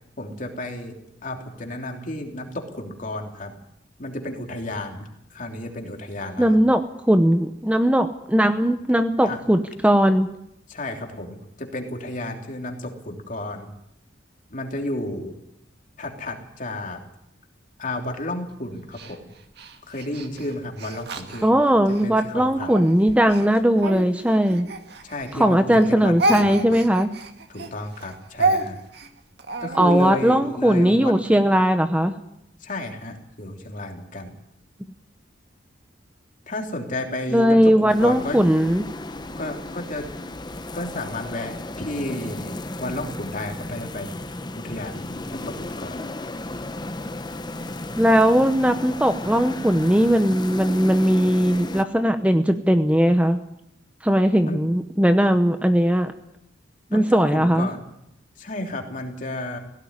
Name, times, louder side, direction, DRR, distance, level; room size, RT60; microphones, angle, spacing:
voice 1, 0.2-3.6 4.0-6.6 9.2-9.4 10.7-13.7 14.5-15.3 16.0-17.0 17.8-19.3 19.9-21.6 22.0-22.7 25.0-26.8 27.5-28.8 29.6-31.4 32.6-34.4 36.5-38.4 39.4-40.1 40.7-44.2 44.5-46.1 54.5-54.6 56.9-57.8 58.4-59.6, left 1 dB, 45° left, 3 dB, 3.3 m, -32 dB
voice 2, 6.4-6.8 7.1-10.3 21.4-24.7 25.3-27.1 29.7-32.1 37.3-38.8 48.0-53.4 54.0-56.1 56.9-57.7, equal, 5° right, 8 dB, 0.8 m, -19 dB
Speech, 18.9-22.1 22.6-25.5 25.7-30.1, right 2 dB, 55° right, 2.0 m, -29 dB
sound 1, 37.9-51.8, left 2 dB, 20° left, 0.9 m, -34 dB
17.5 x 17.0 x 9.7 m, 0.81 s
head